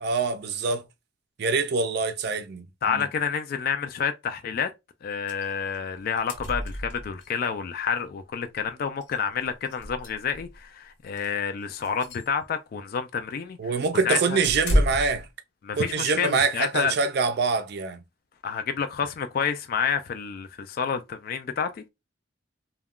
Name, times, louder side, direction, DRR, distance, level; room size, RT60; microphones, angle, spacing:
voice 1, 0.0-0.8 1.4-3.1 13.6-15.3 15.8-18.0, right 4 dB, 60° right, 0.4 m, -25 dB
voice 2, 2.8-4.7 5.0-13.7 14.0-14.4 15.6-17.0 18.4-21.9, left 6 dB, 55° left, 0.3 m, -29 dB
sound 1, 5.3-5.5 5.7-5.8 6.0-7.3 8.6-8.7 9.0-9.1 9.6-10.6 11.1-11.3 11.8-12.3 14.4-15.3, equal, 80° left, 1.0 m, -29 dB
2.3 x 2.2 x 3.5 m
head